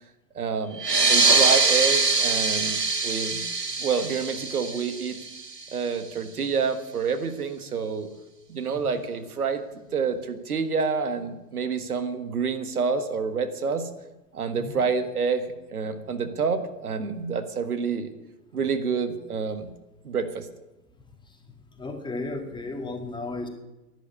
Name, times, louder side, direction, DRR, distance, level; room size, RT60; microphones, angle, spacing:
voice 1, 0.3-0.8 1.1-3.4 3.8-5.2 5.7-8.1 8.5-9.6 9.9-13.9 14.3-18.1 18.5-19.7 20.0-20.5, right 5 dB, 70° right, 9 dB, 1.6 m, -28 dB
sound 1, 0.7-5.9, right 3 dB, 90° right, 1.3 m, -23 dB
voice 2, 21.7-23.5, left 2 dB, 10° left, 4 dB, 2.0 m, -34 dB
12.0 x 10.0 x 9.7 m, 1.0 s
figure-of-eight pair, 95°, 46 cm